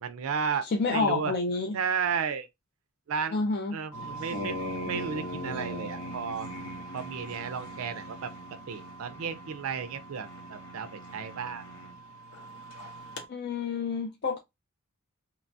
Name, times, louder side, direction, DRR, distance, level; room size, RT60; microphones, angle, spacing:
voice 1, 0.0-0.6 0.9-1.3 1.7-2.5 3.1-3.4 3.7-4.6 4.9-6.5 6.9-8.3 8.7-11.6, right 6 dB, 75° right, 0.4 m, -33 dB
voice 2, 0.6-1.8 3.3-3.8 13.3-14.4, left 4 dB, 50° left, 0.4 m, -29 dB
sound 1, 3.9-13.2, equal, 80° left, 0.8 m, -40 dB
2.9 x 2.2 x 2.6 m
head